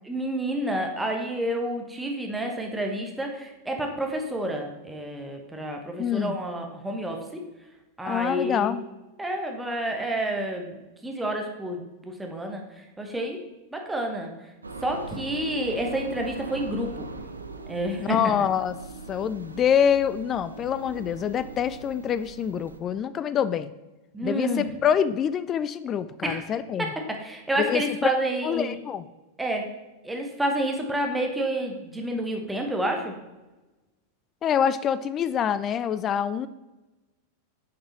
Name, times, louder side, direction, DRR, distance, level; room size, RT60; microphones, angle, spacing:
voice 1, 0.0-7.4 8.0-8.7 9.2-10.7 11.0-13.4 13.7-14.3 14.8-17.1 17.7-18.2 24.1-24.7 26.2-26.4 26.8-28.8 29.4-29.7 30.0-33.1, right 1 dB, 5° right, 2 dB, 1.1 m, -29 dB
voice 2, 6.0-6.4 8.0-8.8 18.0-18.8 19.1-23.7 24.2-26.9 27.6-28.1 28.4-29.1 34.4-36.5, left 8 dB, 30° left, 14 dB, 0.3 m, -25 dB
sound 1, 14.6-22.8, right 3 dB, 80° right, 0.5 m, -41 dB
7.5 x 5.5 x 4.3 m, 1.1 s
figure-of-eight pair, 90°, 0 cm